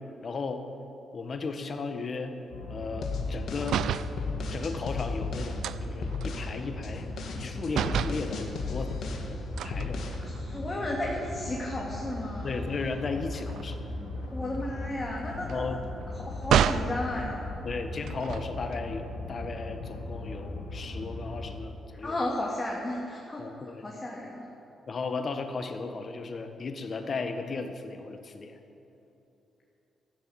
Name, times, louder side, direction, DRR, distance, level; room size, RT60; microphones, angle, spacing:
voice 1, 0.2-0.6 1.1-2.3 2.7-3.9 4.5-7.1 7.3-9.0 9.6-10.0 12.4-13.8 15.4-15.8 17.6-22.2 23.4-23.8 24.9-28.6, left 4 dB, 50° left, 6 dB, 1.6 m, -35 dB
sound 1, 2.5-21.6, left 2 dB, 85° left, 2.4 m, -38 dB
sound 2, 3.0-5.6 6.0-6.5 6.8-9.3 9.7-10.2, left 3 dB, 65° left, 1.9 m, -35 dB
sound 3, 3.6-4.2 5.6-7.4 7.7-8.3 9.6-10.6 11.1-11.3 11.6-17.0 18.0-18.8, right 9 dB, 75° right, 0.4 m, -32 dB
voice 2, 10.2-12.6 14.3-15.7 16.2-17.5 22.0-23.4 23.8-24.5, left 1 dB, 30° left, -4 dB, 3.0 m, -33 dB
14.5 x 10.0 x 8.1 m, 3.0 s
supercardioid pair, 50°, 0 cm